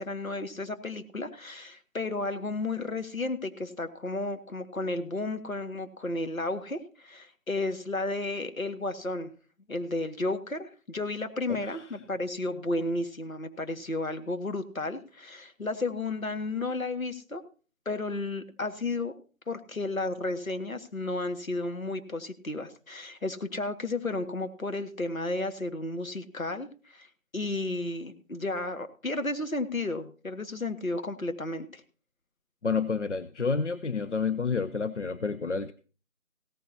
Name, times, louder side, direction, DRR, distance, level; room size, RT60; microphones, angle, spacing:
voice 1, 0.0-9.3 9.7-17.4 17.9-19.2 19.5-27.1 27.3-31.8, left 2 dB, 80° left, 7 dB, 2.0 m, -33 dB
voice 2, 11.5-11.9 32.6-35.7, left 5 dB, 60° left, 11 dB, 0.8 m, -29 dB
17.0 x 14.0 x 2.8 m, 0.37 s
figure-of-eight pair, 165°, 40 cm